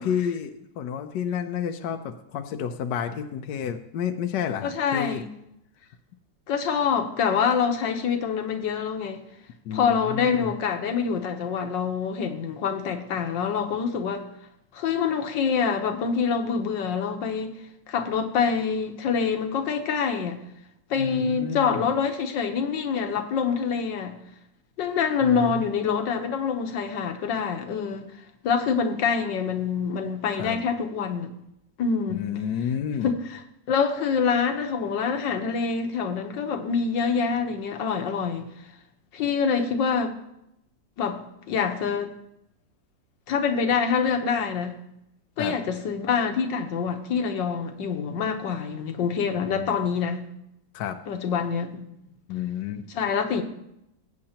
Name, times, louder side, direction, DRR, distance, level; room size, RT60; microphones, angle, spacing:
voice 1, 0.0-5.2 9.6-10.5 21.0-21.9 25.2-25.6 30.4-30.6 32.1-33.1 45.4-45.5 49.3-49.7 50.7-51.0 52.3-52.8, left 8 dB, 75° left, 6 dB, 1.3 m, -30 dB
voice 2, 4.6-5.3 6.5-9.2 9.7-14.3 14.7-17.5 17.9-20.4 20.9-24.2 24.8-28.1 28.4-31.3 31.8-32.2 33.0-33.4 33.7-38.5 39.1-40.2 41.0-41.2 41.5-42.1 43.3-44.8 45.4-50.3 51.1-51.9 52.9-53.4, left 6 dB, 90° left, 5 dB, 1.7 m, -26 dB
20.0 x 8.6 x 2.9 m, 0.82 s
omnidirectional pair, 1.9 m